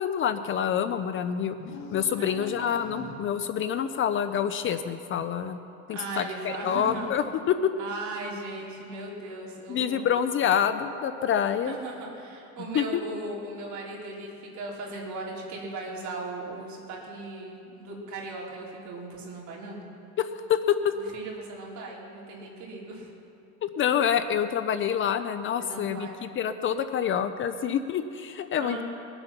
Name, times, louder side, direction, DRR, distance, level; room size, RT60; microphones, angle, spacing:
voice 1, 0.0-1.6 1.9-5.6 5.9-7.6 9.7-11.8 12.7-13.0 20.2-20.9 23.6-28.8, left 8 dB, 35° left, 10 dB, 0.5 m, -27 dB
sound 1, 1.5-3.5, left 3 dB, 55° left, 1.5 m, -42 dB
voice 2, 2.2-2.8 5.9-7.1 7.8-10.2 11.6-19.8 20.9-23.1 25.6-26.2 28.6-28.8, right 2 dB, 55° right, -3 dB, 3.5 m, -38 dB
21.5 x 7.9 x 5.9 m, 2.7 s
cardioid pair, 135°, 34 cm